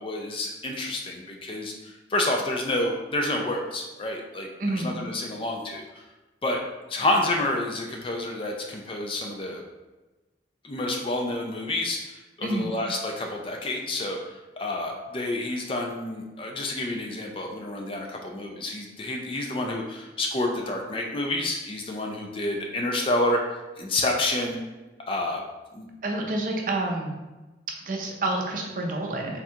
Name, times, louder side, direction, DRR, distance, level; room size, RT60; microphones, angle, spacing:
voice 1, 0.0-5.8 6.4-6.6 6.9-9.6 10.6-24.6 25.1-25.4 25.7-25.9, left 1 dB, 30° left, 1 dB, 0.4 m, -29 dB
voice 2, 4.6-4.9 12.4-12.7 26.0-27.2 27.8-29.4, right 2 dB, 45° right, 1 dB, 0.5 m, -28 dB
3.6 x 2.4 x 4.3 m, 1.1 s
head